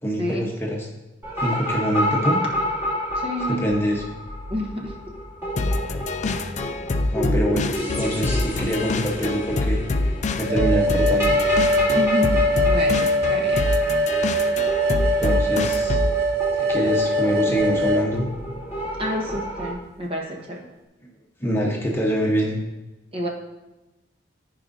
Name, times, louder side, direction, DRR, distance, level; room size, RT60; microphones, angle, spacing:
voice 1, 0.0-0.9 1.4-2.4 3.5-4.2 7.1-7.7 8.0-9.8 10.4-11.4 15.2-16.0 16.3-18.3 21.4-22.6, equal, 15° left, -2 dB, 1.0 m, -25 dB
sound 1, 1.2-19.7, equal, 15° right, 2.5 m, -31 dB
voice 2, 3.2-3.6 4.5-4.9 11.9-13.7 19.0-20.6 23.1-23.3, left 1 dB, 30° right, -1 dB, 1.2 m, -29 dB
sound 2, 5.6-16.2, left 2 dB, 40° left, 0.4 m, -25 dB
sound 3, 10.5-18.1, equal, 60° right, 0.6 m, -22 dB
13.5 x 4.9 x 2.7 m, 1.0 s
head